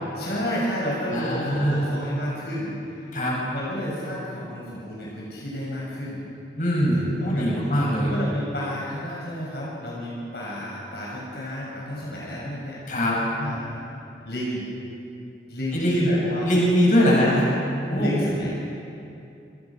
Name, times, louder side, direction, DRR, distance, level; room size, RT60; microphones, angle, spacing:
voice 1, 0.1-3.1 3.4-6.2 7.2-13.1 13.4-13.9 14.2-14.7 15.5-16.5 17.1-17.3 18.0-18.6, equal, 70° left, -5 dB, 6.5 m, -31 dB
voice 2, 1.1-1.9 3.1-3.3 6.6-8.1 12.9-13.2 15.7-16.1 16.4-17.4 17.9-18.1, equal, 45° left, -4 dB, 7.9 m, -21 dB
28.5 x 26.0 x 6.2 m, 2.6 s
head